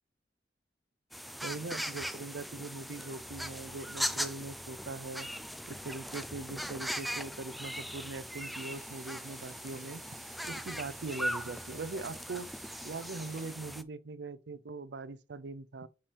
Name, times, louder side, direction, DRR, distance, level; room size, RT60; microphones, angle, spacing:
sound 1, 1.1-13.8, equal, ahead, 0.4 m, -39 dB
voice 1, 1.4-5.3 5.7-10.0 10.5-12.5 12.8-15.9, right 3 dB, 70° right, 0.6 m, -41 dB
sound 2, 6.7-9.9, left 2 dB, 25° left, 0.9 m, -64 dB
sound 3, 8.1-13.7, right 7 dB, 45° right, 1.4 m, -59 dB
7.0 x 5.5 x 3.3 m
head